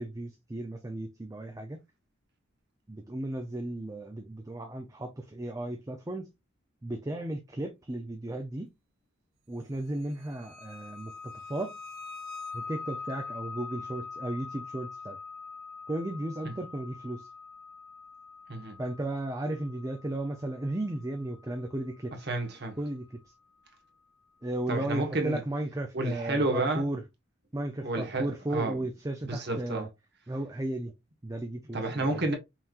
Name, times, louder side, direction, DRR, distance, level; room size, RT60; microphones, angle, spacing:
voice 1, 0.0-1.8 2.9-6.3 6.8-8.7 9.5-11.8 12.5-15.2 15.9-17.3 18.8-22.3 22.8-23.3 24.4-27.0 27.5-29.9 30.3-30.9 31.2-32.2, right 1 dB, 15° right, 0.5 m, -35 dB
sound 1, 10.2-22.7, left 4 dB, 80° right, 1.1 m, -44 dB
voice 2, 22.3-22.8 24.7-25.4 25.9-26.8 27.8-28.7 29.3-29.9 31.7-32.3, right 2 dB, 55° right, 1.2 m, -30 dB
5.6 x 3.1 x 2.4 m
head